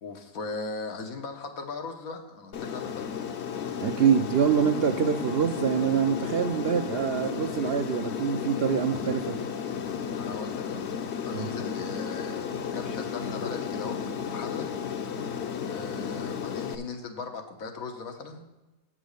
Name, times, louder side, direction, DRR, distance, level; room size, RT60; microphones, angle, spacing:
voice 1, 0.0-3.2 10.1-10.8 11.2-14.7 15.6-18.4, left 4 dB, 90° left, 5 dB, 1.5 m, -38 dB
Aircraft, 2.5-16.7, left 7 dB, 60° left, 0.9 m, -33 dB
voice 2, 3.8-9.4 11.3-11.5, right 7 dB, 65° right, 5 dB, 0.6 m, -25 dB
8.2 x 6.2 x 6.5 m, 1.1 s
omnidirectional pair, 1.4 m